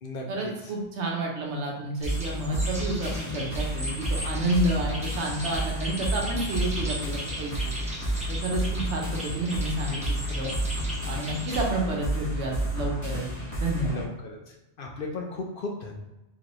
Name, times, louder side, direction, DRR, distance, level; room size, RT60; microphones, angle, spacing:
voice 1, 0.3-7.7 8.3-10.5 11.0-13.3 13.6-14.0, right 1 dB, 75° right, 0 dB, 1.1 m, -30 dB
sound 1, 2.0-14.0, right 1 dB, 15° left, 1.2 m, -31 dB
sound 2, 2.0-11.6, equal, 5° right, 0.7 m, -38 dB
voice 2, 13.9-14.4 14.8-16.0, left 3 dB, 60° left, 0 dB, 0.7 m, -35 dB
4.0 x 2.6 x 3.0 m, 0.98 s
omnidirectional pair, 1.2 m